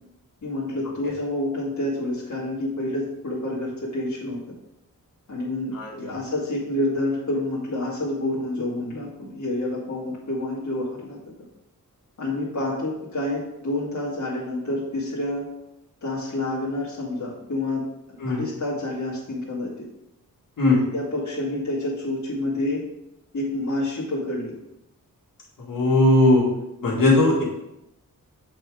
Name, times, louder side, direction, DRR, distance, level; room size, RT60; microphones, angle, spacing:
voice 1, 0.4-4.4 5.3-11.2 12.2-15.5 16.0-17.8 18.2-19.7 20.7-22.8 23.3-24.5, left 1 dB, 55° left, -6 dB, 1.8 m, -28 dB
voice 2, 5.7-6.1 18.2-18.4 20.6-20.8 25.6-26.5 26.8-27.4, left 2 dB, 75° left, -5 dB, 2.0 m, -19 dB
7.6 x 3.8 x 4.8 m, 0.86 s
wide cardioid pair, 180°, 34 cm